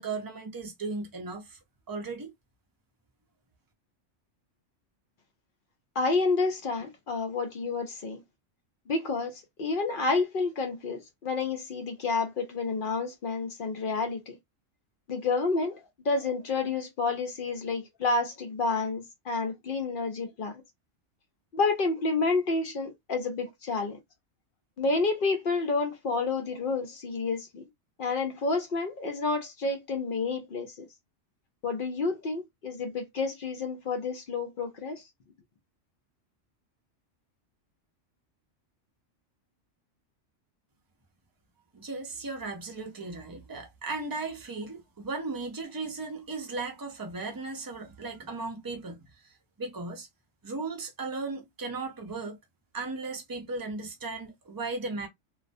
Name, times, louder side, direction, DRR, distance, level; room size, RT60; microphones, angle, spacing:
voice 1, 0.0-1.6 1.9-2.3 41.7-49.0 49.2-50.1 50.4-52.4 52.7-55.1, right 3 dB, 35° right, 0.3 m, -36 dB
voice 2, 5.9-8.2 8.9-14.4 15.1-20.6 21.5-24.0 24.8-27.6 28.0-30.9 31.6-35.1, left 3 dB, 55° left, 0.6 m, -29 dB
2.3 x 2.1 x 2.5 m
omnidirectional pair, 1.3 m